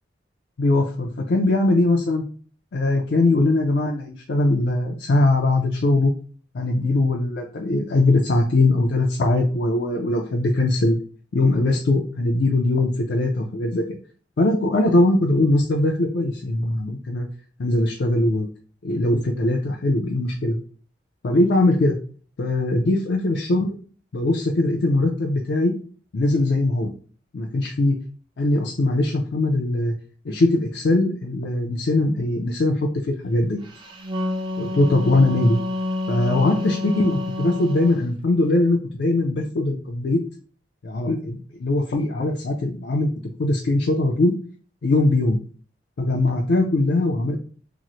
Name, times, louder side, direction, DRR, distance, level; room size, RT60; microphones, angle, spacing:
voice 1, 0.6-2.2 2.7-6.1 6.5-11.0 11.3-13.8 14.4-17.3 17.6-18.5 18.8-20.6 21.2-22.0 22.4-23.8 24.1-25.7 26.1-26.9 27.3-28.0 28.4-29.9 30.2-33.6 34.6-35.6 36.1-40.2 40.8-43.1 43.4-44.3 44.8-45.4 46.0-47.4, left 2 dB, 65° left, 1 dB, 0.4 m, -21 dB
Wind instrument woodwind instrument, 33.8-38.0, left 2 dB, 25° right, 0.4 m, -28 dB
2.9 x 2.0 x 3.9 m, 0.42 s
head